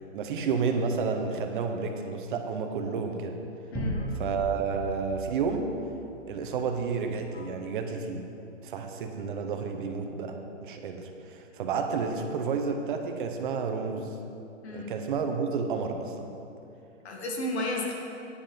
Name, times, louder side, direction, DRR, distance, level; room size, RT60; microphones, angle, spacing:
voice 1, 0.1-3.4 4.2-5.7 6.3-8.3 8.6-14.2 14.7-16.3, right 5 dB, 40° right, 5 dB, 1.0 m, -31 dB
voice 2, 3.7-4.1 7.3-7.5 14.6-14.9 17.0-17.9, left 2 dB, 55° left, 0 dB, 1.7 m, -33 dB
sound 1, 3.7-6.6, right 1 dB, ahead, 0.4 m, -36 dB
9.8 x 8.0 x 5.2 m, 2.7 s
hypercardioid pair, 150°, 38 cm